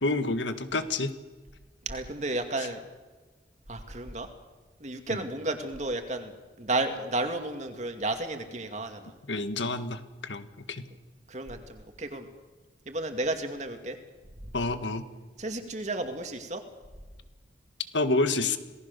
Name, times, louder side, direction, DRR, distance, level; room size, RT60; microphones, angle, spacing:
voice 1, 0.0-1.1 5.1-5.2 9.3-10.8 14.5-15.1 17.9-18.6, left 2 dB, 85° left, 10 dB, 1.8 m, -28 dB
voice 2, 1.9-2.8 3.7-4.3 4.8-6.3 6.6-9.1 11.3-12.3 12.9-14.0 15.4-16.6, right 2 dB, 40° right, 6 dB, 2.4 m, -32 dB
27.5 x 19.0 x 6.9 m, 1.3 s
head